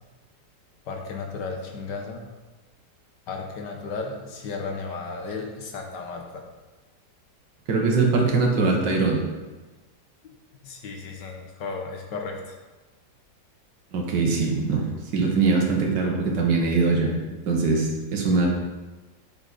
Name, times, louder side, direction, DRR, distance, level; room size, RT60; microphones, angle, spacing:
voice 1, 0.9-2.2 3.3-6.4 8.9-9.0 10.6-12.6, left 4 dB, 75° left, 2 dB, 1.7 m, -34 dB
voice 2, 7.7-9.3 13.9-14.8 15.1-18.5, right 4 dB, 80° right, 0 dB, 2.0 m, -22 dB
7.1 x 6.5 x 4.2 m, 1.2 s
omnidirectional pair, 1.9 m